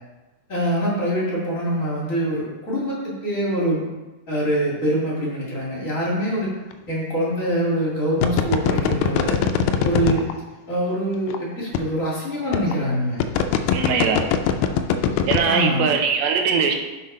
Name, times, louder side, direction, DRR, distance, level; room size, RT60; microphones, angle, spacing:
voice 1, 0.5-3.9 4.3-6.5 6.9-9.4 9.8-10.3 10.7-13.2 15.5-15.9, equal, 35° left, -6 dB, 1.2 m, -24 dB
sound 1, 6.7-6.9 8.2-10.3 11.3-11.4 11.8-11.9 12.5-12.7 13.2-15.5, left 8 dB, 85° left, 2.5 m, -20 dB
voice 2, 13.7-14.2 15.3-16.7, right 6 dB, 80° right, 4 dB, 2.5 m, -21 dB
7.4 x 4.3 x 5.3 m, 1.1 s
omnidirectional pair, 4.5 m